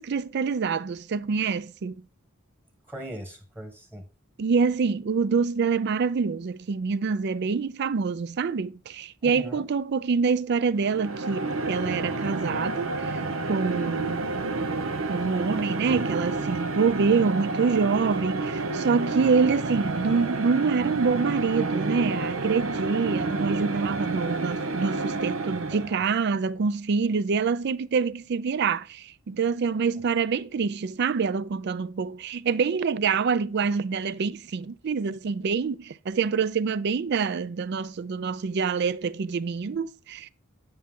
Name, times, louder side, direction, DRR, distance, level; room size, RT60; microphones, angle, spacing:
voice 1, 0.0-2.0 4.4-13.2 13.5-14.3 15.1-40.3, right 5 dB, 55° right, 0.4 m, -26 dB
voice 2, 2.9-4.0 9.2-9.6 25.7-26.0, equal, 10° right, 1.5 m, -40 dB
sound 1, 10.8-26.1, right 3 dB, 85° right, 0.9 m, -30 dB
9.7 x 5.8 x 3.7 m
head